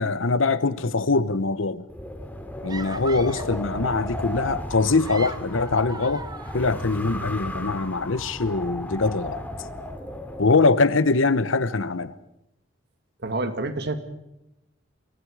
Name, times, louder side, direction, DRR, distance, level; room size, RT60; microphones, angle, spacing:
voice 1, 0.0-1.8 2.6-6.2 6.5-9.4 10.4-12.1, left 3 dB, 90° left, 1.0 m, -23 dB
Wind, 1.9-10.6, left 1 dB, 10° left, 2.6 m, -35 dB
sound 1, 2.7-3.7 4.8-7.2, right 4 dB, 20° right, 0.9 m, -40 dB
voice 2, 13.2-14.0, right 2 dB, 60° right, 2.0 m, -27 dB
30.0 x 23.0 x 4.9 m
head